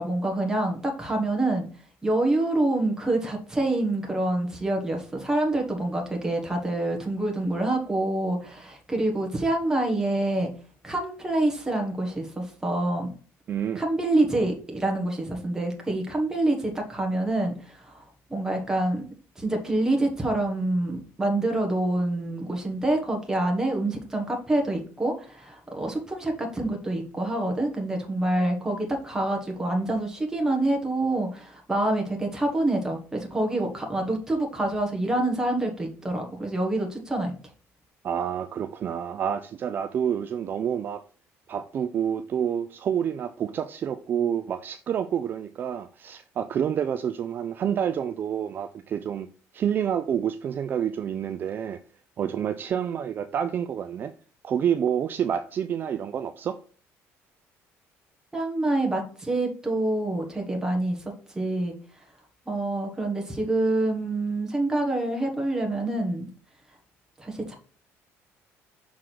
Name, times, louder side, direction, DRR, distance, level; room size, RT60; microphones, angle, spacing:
voice 1, 0.0-1.7 2.0-10.5 10.8-13.1 13.7-18.0 18.3-19.1 19.4-37.3 58.3-61.0 61.3-61.7 62.5-66.3 67.2-67.6, right 2 dB, 10° right, 1.5 m, -26 dB
voice 2, 13.5-13.8 38.0-41.0 41.5-49.3 49.5-51.8 52.2-54.1 54.4-56.6, right 8 dB, 40° right, 0.4 m, -28 dB
6.1 x 3.7 x 4.6 m
cardioid pair, 135°, 5 cm